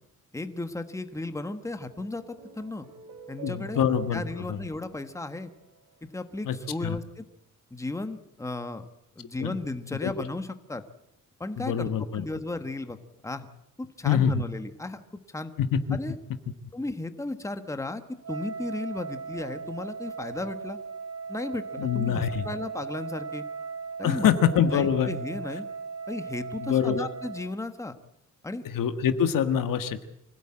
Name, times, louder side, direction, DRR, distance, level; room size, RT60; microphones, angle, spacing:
voice 1, 0.3-2.9 3.3-3.8 4.1-5.5 6.0-7.3 7.7-8.9 9.2-10.8 11.4-13.0 13.2-13.5 13.8-15.0 15.3-15.5 15.9-16.2 16.7-18.0 18.3-20.8 21.3-23.4 24.0-25.6 26.1-27.9 28.4-28.6, left 2 dB, 10° left, 9 dB, 1.3 m, -35 dB
sound 1, 1.6-6.2, right 5 dB, 90° right, 3.6 m, -48 dB
voice 2, 3.4-4.2 4.5-4.6 6.4-6.6 6.8-7.0 9.4-9.6 10.0-10.1 11.6-12.2 14.0-14.4 15.6-16.0 21.8-22.4 24.0-25.2 26.6-27.1 28.6-30.1, left 8 dB, 75° left, 10 dB, 1.5 m, -25 dB
Wind instrument woodwind instrument, 18.2-27.6, right 5 dB, 55° right, 3.0 m, -38 dB
25.0 x 16.5 x 8.8 m, 0.84 s
wide cardioid pair, 155°, 33 cm